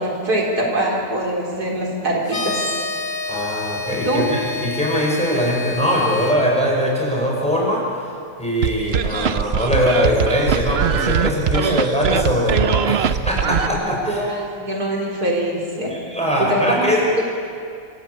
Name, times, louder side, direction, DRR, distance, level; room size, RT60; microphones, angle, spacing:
voice 1, 0.0-2.6 3.9-4.2 11.6-11.9 13.8-15.9 16.4-17.2, right 1 dB, 80° right, -2 dB, 4.5 m, -23 dB
sound 1, 2.3-6.4, left 3 dB, 60° left, 2.8 m, -28 dB
voice 2, 3.3-7.8 8.4-14.2 15.9-17.1, equal, 5° left, -3 dB, 6.5 m, -21 dB
sound 2, 8.6-13.7, right 7 dB, 50° right, 0.8 m, -21 dB
26.0 x 18.5 x 8.7 m, 2.4 s
omnidirectional pair, 1.6 m